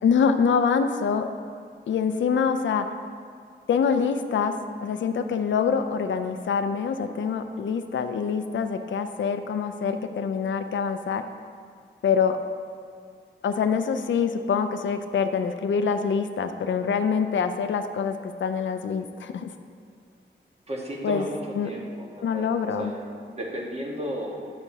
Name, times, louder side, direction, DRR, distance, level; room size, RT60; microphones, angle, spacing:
voice 1, 0.0-1.3 1.9-2.9 3.7-4.5 4.8-11.2 12.0-12.4 13.4-19.5 21.0-21.2 21.6-21.7 22.2-22.9, left 6 dB, 70° left, 8 dB, 0.4 m, -25 dB
voice 2, 20.7-24.5, equal, 30° right, -2 dB, 1.3 m, -34 dB
10.5 x 8.1 x 2.8 m, 2.2 s
wide cardioid pair, 135°, 20 cm